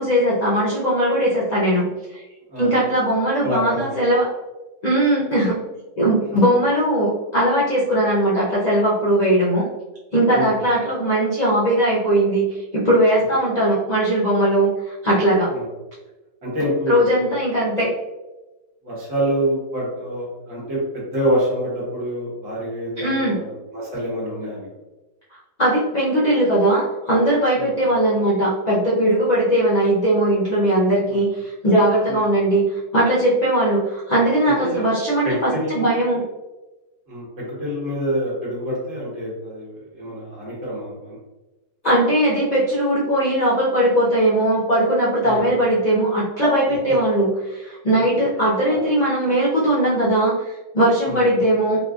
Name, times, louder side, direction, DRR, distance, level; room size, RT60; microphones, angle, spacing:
voice 1, 0.0-1.8 2.1-2.2 2.6-4.3 4.8-5.6 6.0-9.7 10.1-12.5 12.7-15.5 16.9-17.9 23.0-23.4 25.6-36.2 41.8-51.8, right 1 dB, 70° left, -7 dB, 0.4 m, -19 dB
voice 2, 3.4-3.9 10.3-10.6 13.2-13.4 15.5-15.7 16.4-17.3 18.8-24.7 27.6-27.7 31.1-31.2 32.1-32.3 34.5-34.9 35.2-35.9 37.1-41.2 45.2-45.5 46.7-46.8 48.7-48.8 51.1-51.2, equal, 50° right, -6 dB, 1.4 m, -26 dB
4.2 x 2.3 x 2.3 m, 1.1 s
omnidirectional pair, 1.9 m